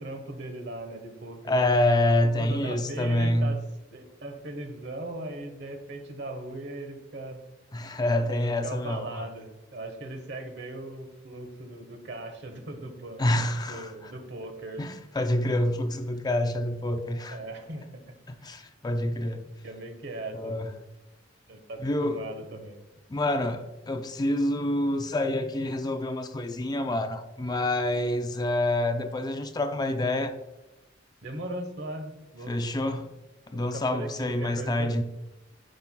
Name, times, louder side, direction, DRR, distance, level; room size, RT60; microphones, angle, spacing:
voice 1, 0.0-1.7 2.4-3.6 3.9-7.4 8.6-13.2 13.7-14.8 17.3-18.0 19.6-20.7 21.5-22.8 31.2-32.6 33.5-35.0, right 1 dB, 65° right, 1.1 m, -38 dB
voice 2, 1.5-3.6 7.7-9.2 13.2-14.1 14.8-17.4 18.4-19.5 20.3-20.7 21.8-22.3 23.1-30.3 32.5-33.1 33.5-35.0, left 1 dB, 20° left, 0.4 m, -27 dB
10.0 x 5.4 x 2.2 m
head